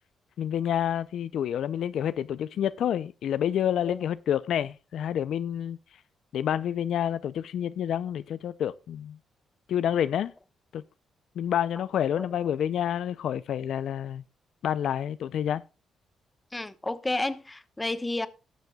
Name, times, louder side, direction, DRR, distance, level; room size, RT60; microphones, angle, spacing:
voice 1, 0.4-5.8 6.3-9.2 9.7-10.3 10.7-10.8 11.4-14.2 14.6-15.6, left 10 dB, 75° left, 0.4 m, -28 dB
voice 2, 16.5-18.3, left 2 dB, 15° left, 0.9 m, -31 dB
18.5 x 6.7 x 2.3 m
cardioid pair, 95°, 0 cm